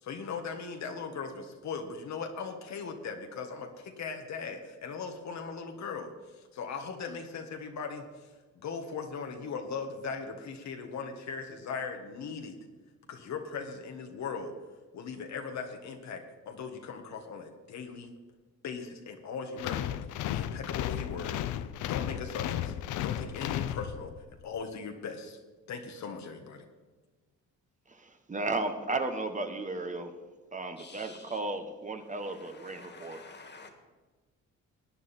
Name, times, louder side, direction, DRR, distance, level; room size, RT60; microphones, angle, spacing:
voice 1, 0.0-8.3 8.5-12.6 13.1-14.5 14.9-18.1 18.6-19.9 20.3-21.4 21.9-22.7 23.0-24.1 24.4-25.4 25.7-26.7, left 5 dB, 65° left, 4 dB, 1.6 m, -39 dB
sound 1, 19.6-24.3, left 12 dB, 85° left, 0.6 m, -34 dB
voice 2, 27.9-30.1 30.5-33.2, right 2 dB, 25° right, 6 dB, 1.2 m, -34 dB
voice 3, 30.8-31.4 32.2-33.7, left 4 dB, 35° left, 5 dB, 2.2 m, -50 dB
18.5 x 9.6 x 4.4 m, 1.3 s
cardioid pair, 90°, 30 cm